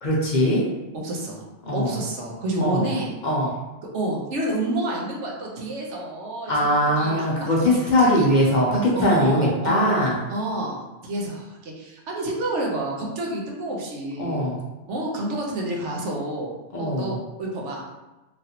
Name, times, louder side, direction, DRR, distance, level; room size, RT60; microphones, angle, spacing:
voice 1, 0.0-0.7 1.7-2.0 2.6-2.8 3.2-3.5 6.5-10.2 14.2-14.6 16.7-17.1, equal, 50° left, -4 dB, 0.7 m, -21 dB
voice 2, 1.0-1.5 1.7-3.1 3.9-8.3 9.0-14.5 14.9-17.9, right 1 dB, 80° right, -2 dB, 1.1 m, -29 dB
3.1 x 2.5 x 2.8 m, 1.1 s
omnidirectional pair, 1.2 m